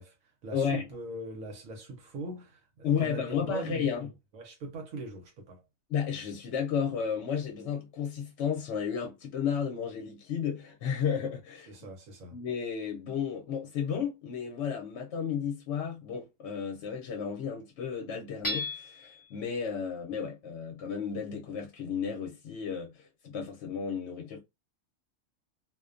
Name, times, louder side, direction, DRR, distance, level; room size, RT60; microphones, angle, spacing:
voice 1, 0.0-4.1 4.3-5.6 11.7-12.4, right 2 dB, 80° right, 1.0 m, -41 dB
voice 2, 0.5-0.9 2.8-4.1 5.9-11.7 12.3-24.4, left 7 dB, 65° left, 0.8 m, -33 dB
Hammer / Chink clink, 18.4-19.2, left 1 dB, 30° left, 0.8 m, -34 dB
2.4 x 2.1 x 2.4 m
omnidirectional pair, 1.4 m